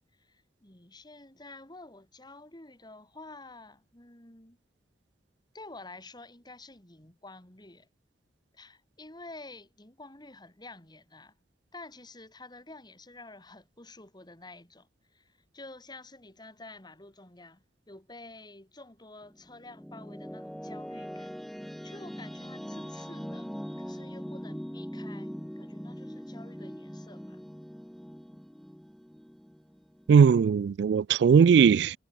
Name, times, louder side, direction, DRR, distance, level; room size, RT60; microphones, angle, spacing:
voice 1, 0.0-4.6 5.5-7.9 8.5-11.4 11.7-21.3 21.8-23.5 23.8-27.4, left 2 dB, 25° left, 3.6 m, -49 dB
sound 1, 19.2-30.3, equal, ahead, 0.5 m, -41 dB
voice 2, 30.1-32.0, right 6 dB, 70° right, 0.3 m, -19 dB
head